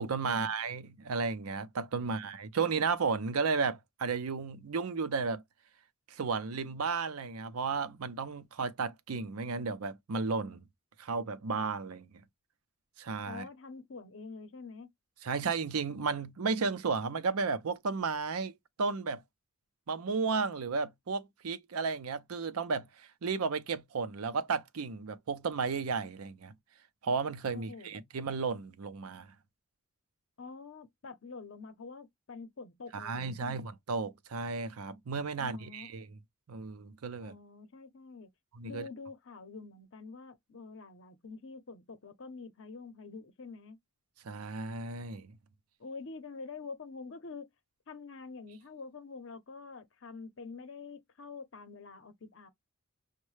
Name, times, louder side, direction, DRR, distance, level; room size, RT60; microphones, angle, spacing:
voice 1, 0.0-5.4 6.1-10.6 11.0-12.1 13.0-13.5 15.2-18.5 18.8-19.2 19.9-26.5 27.0-29.3 32.9-36.2 36.5-37.3 38.5-38.9 44.2-45.3, right 4 dB, 85° right, 0.6 m, -33 dB
voice 2, 13.3-14.9 27.5-28.0 30.4-33.7 35.4-36.1 37.2-38.3 38.6-43.8 45.8-47.5 47.9-52.5, left 4 dB, 60° left, 0.7 m, -46 dB
6.2 x 2.2 x 3.1 m
head